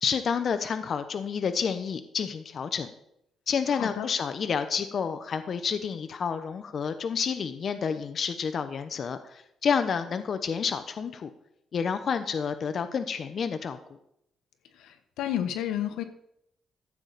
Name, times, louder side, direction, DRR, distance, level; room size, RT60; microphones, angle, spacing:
voice 1, 0.0-2.9 3.5-11.3 11.7-13.8, left 6 dB, 50° left, 10 dB, 0.8 m, -29 dB
voice 2, 3.7-4.1 14.8-16.0, left 11 dB, 90° left, 9 dB, 1.2 m, -31 dB
14.5 x 8.1 x 4.1 m, 0.76 s
cardioid pair, 90°, 0 cm